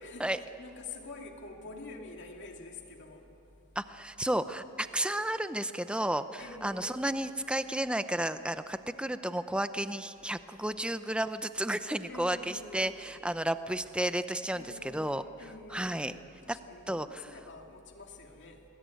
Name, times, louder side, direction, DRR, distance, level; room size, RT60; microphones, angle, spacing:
voice 1, 0.0-0.3 0.6-3.3 6.4-6.9 12.1-13.1 14.5-15.0 15.4-18.6, left 3 dB, 50° left, 2 dB, 2.8 m, -47 dB
voice 2, 3.8-15.2 15.7-16.1 16.5-16.6 16.9-17.3, right 1 dB, 5° right, 11 dB, 0.6 m, -32 dB
27.5 x 20.5 x 9.3 m, 2.9 s
head